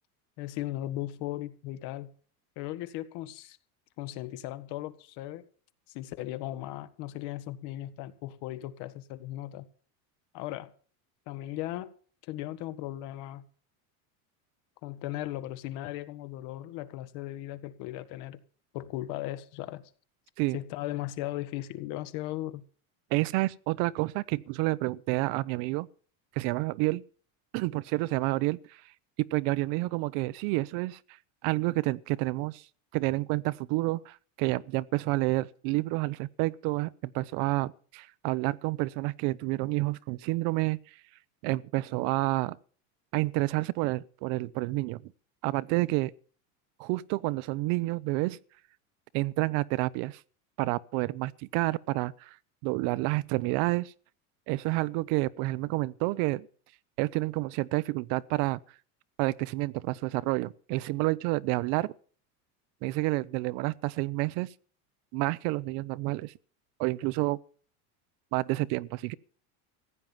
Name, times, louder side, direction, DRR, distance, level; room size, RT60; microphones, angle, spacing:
voice 1, 0.4-2.1 2.5-3.6 4.0-5.5 5.9-9.7 10.3-10.7 11.3-11.9 12.3-13.5 14.8-18.4 18.7-19.8 20.5-22.6, left 15 dB, 65° left, 1.7 m, -37 dB
voice 2, 23.1-25.9 26.4-27.0 27.5-28.6 29.3-31.0 31.4-32.6 32.9-40.8 41.4-42.6 43.1-45.0 45.4-46.1 46.8-48.4 49.1-50.2 50.6-52.3 52.6-53.9 54.5-56.5 57.0-58.6 59.2-61.9 62.8-64.5 65.1-66.3 66.8-67.4 68.3-69.1, right 21 dB, 65° right, 0.8 m, -29 dB
15.5 x 9.3 x 7.3 m
supercardioid pair, 120°, 43 cm